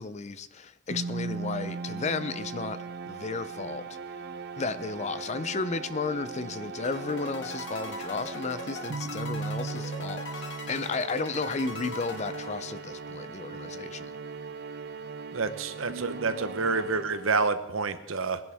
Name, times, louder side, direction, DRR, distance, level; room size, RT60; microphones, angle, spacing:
voice 1, 0.0-4.0 4.6-14.1, left 4 dB, 35° left, 0.5 m, -33 dB
sound 1, 0.9-17.7, right 4 dB, 50° right, 0.5 m, -38 dB
sound 2, 6.8-13.1, left 3 dB, 55° left, 1.5 m, -41 dB
voice 2, 15.3-18.4, right 4 dB, 70° right, 0.9 m, -28 dB
20.5 x 11.0 x 3.5 m
head